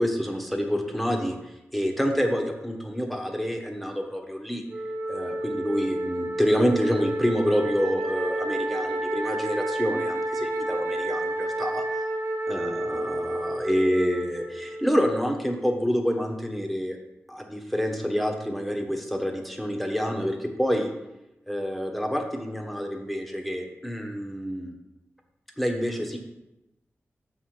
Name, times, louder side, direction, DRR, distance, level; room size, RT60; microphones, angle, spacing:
voice 1, 0.0-4.6 5.1-11.8 12.5-17.0 17.3-20.9 21.5-24.7 25.6-26.2, equal, ahead, 2 dB, 1.3 m, -27 dB
Wind instrument woodwind instrument, 4.7-15.1, right 1 dB, 65° right, 1.2 m, -30 dB
6.7 x 5.0 x 6.0 m, 0.94 s
wide cardioid pair, 70°, 5 cm